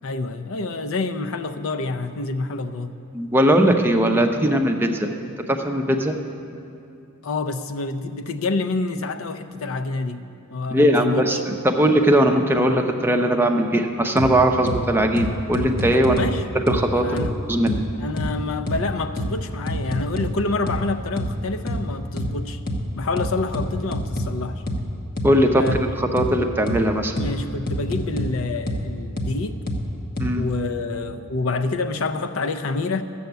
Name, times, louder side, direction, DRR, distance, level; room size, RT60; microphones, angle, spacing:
voice 1, 0.0-2.9 7.2-10.2 10.5-11.4 15.9-16.4 17.0-17.3 18.0-22.6 23.0-24.6 25.5-25.8 27.2-29.6 30.3-33.0, left 3 dB, 70° left, 8 dB, 0.6 m, -27 dB
voice 2, 3.1-5.1 5.6-6.1 10.7-16.2 16.7-17.8 25.2-25.6 26.0-27.1 30.2-30.4, right 1 dB, 10° right, 3 dB, 0.6 m, -19 dB
sound 1, 14.2-14.3 14.7-14.8 15.2-16.3 16.7-16.8 17.2-17.3 17.7-17.8 18.2-18.3 18.7-18.8 19.2-19.3 19.7-20.3 20.7-20.8 21.2-21.3 21.7-21.8 22.2-22.3 22.7-22.8 23.2-24.3 24.7-24.8 25.2-25.3 25.7-25.8 26.2-26.3 26.7-26.8 27.2-27.3 27.7-28.3 28.7-28.8 29.2-29.3 29.7-29.8 30.2-30.3, equal, 45° left, 1.1 m, -26 dB
13.0 x 7.0 x 8.0 m, 2.6 s
head